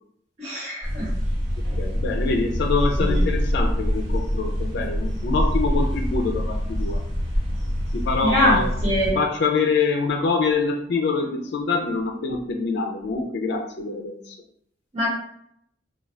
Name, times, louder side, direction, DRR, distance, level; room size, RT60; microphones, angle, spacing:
voice 1, 0.4-1.1 3.0-3.2 8.2-8.6 8.8-9.2 14.9-15.1, equal, 40° right, -7 dB, 1.4 m, -23 dB
sound 1, 0.8-9.1, equal, 85° right, 1.1 m, -25 dB
voice 2, 1.8-7.0 7.9-8.8 9.1-14.4, left 4 dB, 65° left, 3 dB, 0.4 m, -25 dB
2.4 x 2.3 x 3.1 m, 0.70 s
head